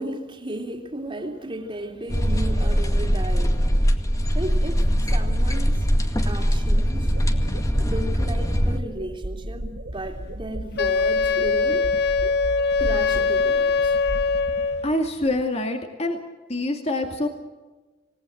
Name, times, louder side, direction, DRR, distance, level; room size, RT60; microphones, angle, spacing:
voice 1, 0.0-3.6 4.3-5.9 6.2-7.1 7.8-11.9 12.8-13.9, right 1 dB, 25° right, 3 dB, 3.2 m, -34 dB
sound 1, 2.1-8.8, equal, 20° left, 2.0 m, -21 dB
sound 2, 5.2-15.4, right 1 dB, 80° right, 1.9 m, -35 dB
Wind instrument woodwind instrument, 10.8-14.9, left 4 dB, 60° left, 0.8 m, -22 dB
voice 2, 14.8-16.2 16.5-17.3, left 1 dB, 35° left, 4 dB, 2.4 m, -25 dB
28.0 x 18.5 x 7.9 m, 1.2 s
head